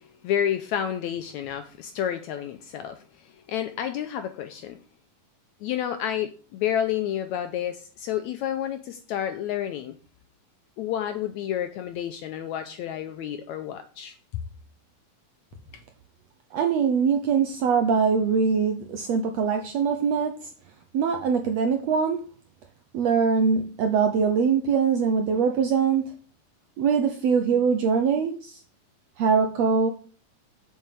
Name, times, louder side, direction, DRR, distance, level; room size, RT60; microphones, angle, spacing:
voice 1, 0.0-4.8 5.6-9.9 10.8-14.4, left 10 dB, 80° left, 1.7 m, -30 dB
voice 2, 16.5-20.5 20.9-22.2 22.9-26.1 26.8-28.6 29.2-29.9, right 6 dB, 75° right, 1.5 m, -23 dB
7.5 x 5.6 x 7.5 m
omnidirectional pair, 3.9 m